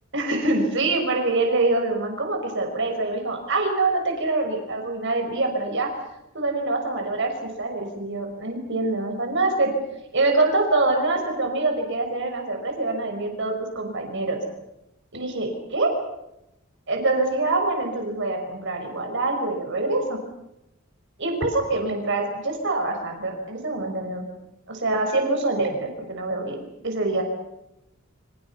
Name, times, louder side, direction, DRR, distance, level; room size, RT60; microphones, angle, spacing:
voice 1, 0.1-5.9 6.3-9.7 10.1-14.4 15.1-15.9 16.9-20.2 21.2-24.2 24.7-27.2, right 2 dB, 60° right, 3 dB, 5.7 m, -25 dB
29.5 x 27.5 x 5.8 m, 0.87 s
head